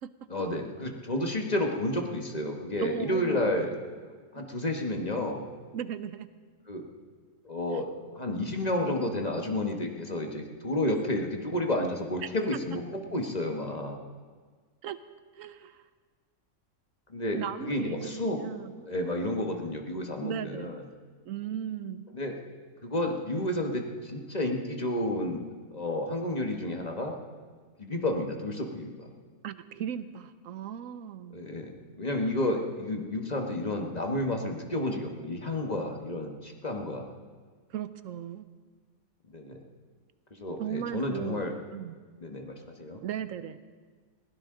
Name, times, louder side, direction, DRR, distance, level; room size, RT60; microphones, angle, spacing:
voice 1, 0.3-3.7 4.3-5.4 6.7-6.9 7.4-14.0 17.1-18.4 18.9-20.8 22.1-22.4 22.8-25.4 25.7-27.2 27.8-29.1 31.3-37.0 39.3-39.6 40.3-41.5 42.2-43.0, left 1 dB, 30° left, 2 dB, 1.4 m, -31 dB
voice 2, 2.8-3.5 5.7-6.3 12.2-12.6 14.8-15.0 15.4-15.8 17.3-18.9 20.2-20.7 21.3-22.0 29.4-31.4 37.7-38.5 40.6-41.4 41.7-42.0 43.0-43.6, right 9 dB, 75° right, 12 dB, 1.0 m, -36 dB
22.0 x 16.5 x 3.8 m, 1.5 s
omnidirectional pair, 1.4 m